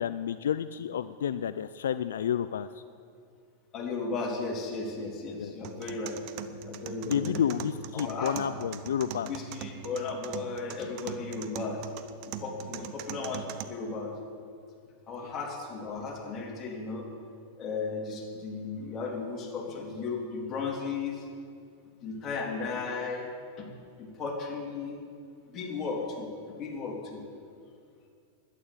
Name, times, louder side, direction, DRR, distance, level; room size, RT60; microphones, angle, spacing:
voice 1, 0.0-2.8 5.4-5.5 7.0-9.3 12.7-12.9 15.2-15.3, left 8 dB, 85° left, 13 dB, 0.4 m, -30 dB
voice 2, 3.7-6.2 6.6-7.4 7.9-8.3 9.2-11.8 12.2-14.1 15.1-17.1 17.6-21.3 22.0-23.3 23.6-23.7 24.0-25.0 25.5-27.4, left 4 dB, 30° left, -2 dB, 3.4 m, -35 dB
sound 1, 5.6-13.6, right 10 dB, 50° right, 0.8 m, -41 dB
11.5 x 9.5 x 8.3 m, 2.3 s
hypercardioid pair, 115°, 0 cm